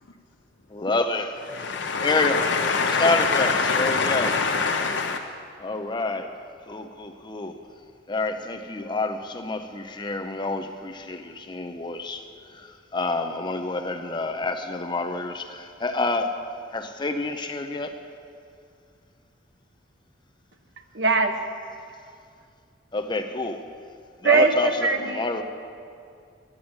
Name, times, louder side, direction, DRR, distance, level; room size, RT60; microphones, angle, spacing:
voice 1, 0.7-1.4 2.0-2.4 2.9-4.3 5.6-6.3 6.7-7.6 8.1-12.2 12.5-16.3 16.7-17.9 22.9-23.6 24.2-24.7 25.0-25.4, left 3 dB, 25° left, 6 dB, 0.6 m, -28 dB
voice 2, 1.5-5.2, left 4 dB, 65° left, 4 dB, 0.7 m, -24 dB
voice 3, 20.9-21.4 24.2-25.4, right 3 dB, 70° right, 5 dB, 1.2 m, -21 dB
11.0 x 10.5 x 8.7 m, 2.3 s
head